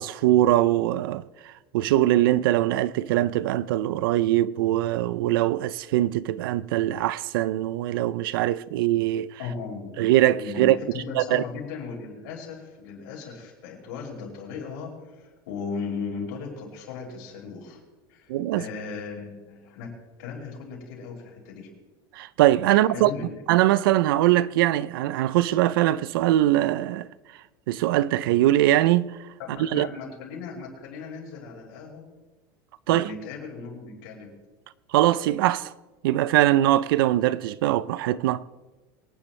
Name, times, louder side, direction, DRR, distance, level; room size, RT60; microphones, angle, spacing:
voice 1, 0.0-9.4 10.0-10.8 11.2-11.4 18.3-18.6 22.1-23.1 23.5-27.1 27.7-29.2 29.6-29.9 32.9-33.1 34.9-35.7 36.0-38.4, right 14 dB, 85° right, 0.5 m, -22 dB
voice 2, 9.4-10.1 10.4-17.8 18.1-19.9 20.2-21.7 22.7-23.4 29.4-32.0 32.9-34.3, left 5 dB, 80° left, 5.5 m, -37 dB
24.0 x 10.5 x 3.3 m
supercardioid pair, 130°, 11 cm